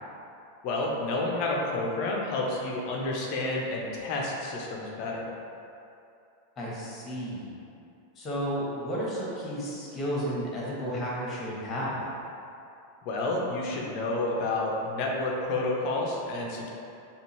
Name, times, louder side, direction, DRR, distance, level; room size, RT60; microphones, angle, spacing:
voice 1, 0.6-5.3 13.0-16.7, left 2 dB, 40° left, -2 dB, 0.6 m, -30 dB
voice 2, 6.6-7.5 8.2-12.0, equal, 20° left, -6 dB, 1.2 m, -32 dB
5.1 x 2.4 x 3.1 m, 2.7 s
figure-of-eight pair, 90°, 0 cm